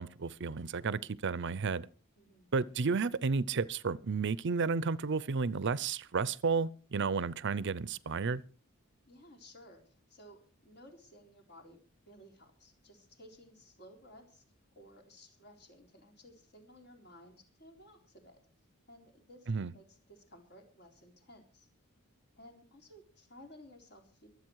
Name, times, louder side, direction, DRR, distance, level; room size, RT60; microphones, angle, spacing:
voice 1, 0.0-1.9 2.5-8.4 19.5-19.7, right 4 dB, 55° right, 0.6 m, -32 dB
voice 2, 2.2-2.5 9.1-11.8 12.1-14.4 14.8-18.4 18.9-21.7 22.4-24.3, equal, 50° left, 3.9 m, -57 dB
23.5 x 8.3 x 4.7 m
head